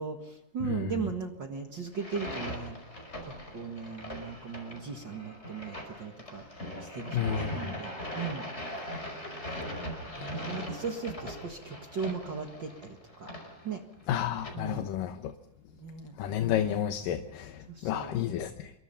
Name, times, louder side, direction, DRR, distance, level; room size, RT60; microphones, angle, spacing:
voice 1, 0.0-2.8 3.5-6.5 6.8-8.5 10.2-13.3 13.6-13.8 14.5-14.9 15.7-16.2 17.7-18.2, right 5 dB, 40° right, 4 dB, 1.8 m, -37 dB
voice 2, 0.6-1.0 7.1-7.8 14.1-15.3 16.2-18.7, left 10 dB, 80° left, 7 dB, 2.7 m, -31 dB
sound 1, 1.9-14.5, equal, 20° left, 5.6 m, -40 dB
27.0 x 23.0 x 5.6 m, 0.82 s
omnidirectional pair, 3.9 m